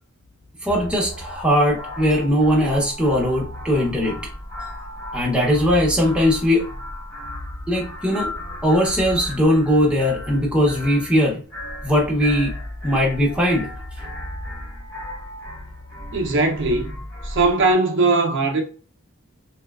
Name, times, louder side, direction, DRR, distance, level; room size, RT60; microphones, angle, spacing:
sound 1, 0.6-17.7, left 1 dB, 15° left, 1.0 m, -35 dB
voice 1, 0.6-4.2 5.1-6.6 7.7-8.3 8.6-11.4 11.8-12.5 12.8-13.7, equal, 5° right, 0.7 m, -19 dB
voice 2, 16.1-17.0 17.2-18.6, right 3 dB, 60° right, 0.5 m, -19 dB
2.6 x 2.2 x 2.3 m
head